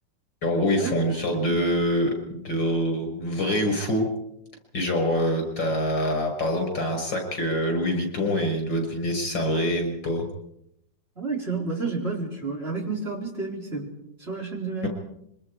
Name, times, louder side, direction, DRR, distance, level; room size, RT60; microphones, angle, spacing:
voice 1, 0.4-4.1 4.7-10.2 14.8-14.9, equal, 75° left, 4 dB, 6.7 m, -25 dB
voice 2, 11.2-13.9 14.2-14.9, right 4 dB, 30° right, -1 dB, 4.8 m, -30 dB
26.0 x 23.5 x 4.9 m, 0.79 s
omnidirectional pair, 2.1 m